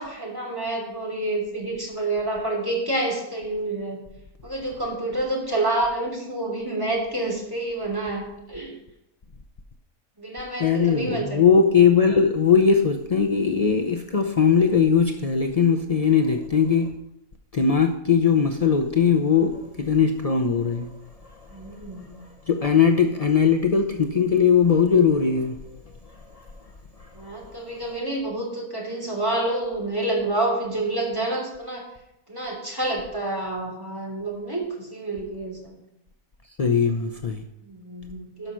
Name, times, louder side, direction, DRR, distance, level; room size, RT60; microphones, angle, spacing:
voice 1, 0.0-4.0 4.4-8.8 10.2-11.4 21.5-22.1 27.1-31.9 32.3-35.8 37.6-38.5, right 2 dB, 15° right, -2 dB, 3.0 m, -28 dB
voice 2, 10.6-16.9 17.5-21.0 22.5-25.6 26.3-26.5 27.0-27.3 36.6-37.4, left 6 dB, 55° left, 5 dB, 0.4 m, -20 dB
12.0 x 5.6 x 6.2 m, 0.87 s
omnidirectional pair, 1.5 m